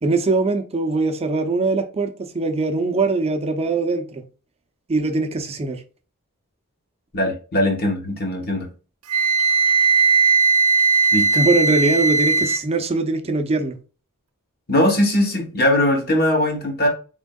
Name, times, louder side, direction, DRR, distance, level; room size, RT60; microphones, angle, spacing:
voice 1, 0.0-4.2 4.9-5.8 11.4-13.8, right 3 dB, 30° right, 0.5 m, -21 dB
voice 2, 7.1-8.7 11.1-11.3 14.7-16.9, left 1 dB, 45° left, 1.2 m, -20 dB
Wind instrument woodwind instrument, 9.1-12.6, right 4 dB, 90° right, 0.5 m, -17 dB
4.4 x 3.5 x 2.2 m
head